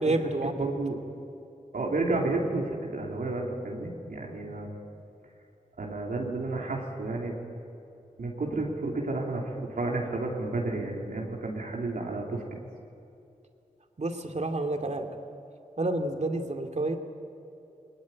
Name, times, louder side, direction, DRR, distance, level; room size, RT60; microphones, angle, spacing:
voice 1, 0.0-0.5 14.0-15.1 15.8-17.0, right 2 dB, 50° right, 4 dB, 2.4 m, -29 dB
voice 2, 0.6-1.0 1.7-4.7 5.8-7.3 8.2-12.4, right 2 dB, 75° right, -1 dB, 3.2 m, -31 dB
21.0 x 19.5 x 9.6 m, 2.7 s
cardioid pair, 45°, 15 cm